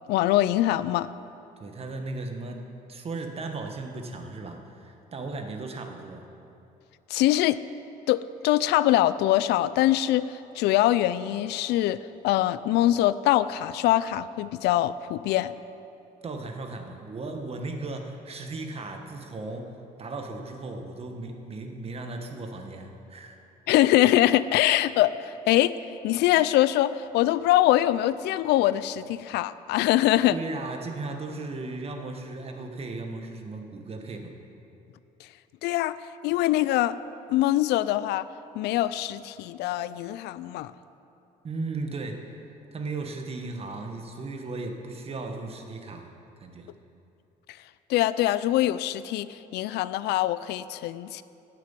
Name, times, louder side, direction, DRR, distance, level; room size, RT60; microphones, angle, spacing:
voice 1, 0.1-1.1 7.1-7.6 8.1-12.0 12.2-15.5 23.7-25.7 26.0-30.4 35.6-36.0 36.2-37.0 37.3-38.3 38.6-40.7 47.9-51.2, left 14 dB, 80° left, 16 dB, 0.4 m, -23 dB
voice 2, 1.6-6.2 16.2-19.7 20.0-23.4 30.3-34.3 41.4-42.4 42.7-46.1 46.4-46.7, right 3 dB, 35° right, 4 dB, 1.4 m, -36 dB
11.0 x 7.7 x 8.8 m, 2.8 s
cardioid pair, 110°, 17 cm